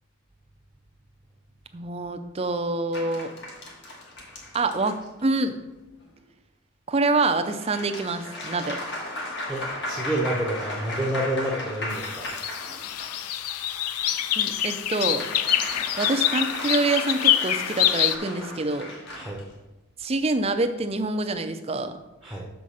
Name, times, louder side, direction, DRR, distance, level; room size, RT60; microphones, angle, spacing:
voice 1, 1.7-3.3 4.5-5.6 6.9-8.8 14.4-15.3 16.0-18.9 20.0-21.9, right 3 dB, 25° right, 8 dB, 0.5 m, -26 dB
sound 1, 2.9-5.4 7.2-13.2 14.1-19.4, left 1 dB, 50° left, 1.6 m, -35 dB
voice 2, 9.5-12.3 19.1-19.5 22.2-22.5, right 1 dB, ahead, -3 dB, 0.8 m, -29 dB
sound 2, 11.9-18.2, left 11 dB, 90° left, 0.4 m, -26 dB
6.8 x 4.9 x 5.5 m, 1.0 s
head